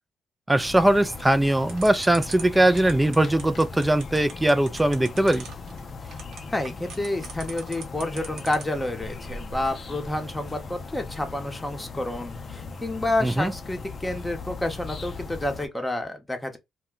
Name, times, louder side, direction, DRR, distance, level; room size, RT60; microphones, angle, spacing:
voice 1, 0.5-5.5 13.2-13.5, right 1 dB, 10° right, 0.4 m, -21 dB
sound 1, 0.6-15.7, left 4 dB, 45° left, 0.5 m, -38 dB
sound 2, 1.7-8.8, right 6 dB, 75° right, 0.8 m, -40 dB
voice 2, 6.5-16.6, left 1 dB, 15° left, 0.8 m, -29 dB
2.2 x 2.2 x 3.6 m
supercardioid pair, 70°, 0 cm